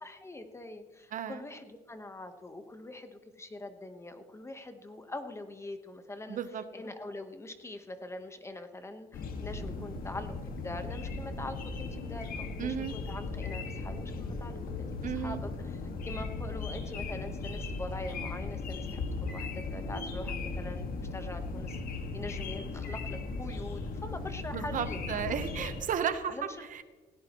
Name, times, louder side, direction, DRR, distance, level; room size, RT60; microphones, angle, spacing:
voice 1, 0.0-6.4 6.7-21.8 22.1-25.7 26.3-26.6, left 2 dB, 15° left, 8 dB, 1.2 m, -43 dB
voice 2, 1.1-1.4 6.3-6.6 12.6-12.9 15.0-15.4 24.5-26.4 26.7-26.8, right 8 dB, 50° right, 10 dB, 1.0 m, -34 dB
sound 1, 9.1-25.8, left 3 dB, 60° left, 1.8 m, -37 dB
18.5 x 16.5 x 3.1 m, 1.3 s
cardioid pair, 110°, 17 cm